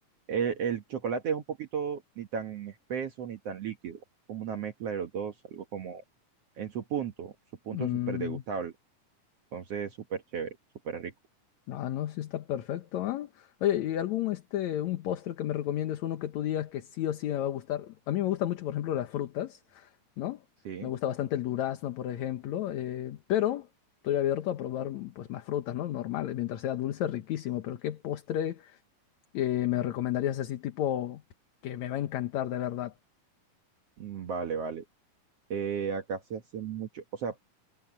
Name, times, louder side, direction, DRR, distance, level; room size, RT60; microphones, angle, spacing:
voice 1, 0.3-4.0 4.3-6.0 6.6-7.3 7.7-8.7 9.5-10.6 10.9-11.1 20.7-20.9 34.0-34.8 35.5-37.5, right 7 dB, 55° right, 2.0 m, -34 dB
voice 2, 7.7-8.4 11.7-19.9 20.2-20.4 20.8-23.7 24.0-28.8 29.3-31.2 31.6-32.9, left 12 dB, 65° left, 2.2 m, -31 dB
omnidirectional pair, 3.8 m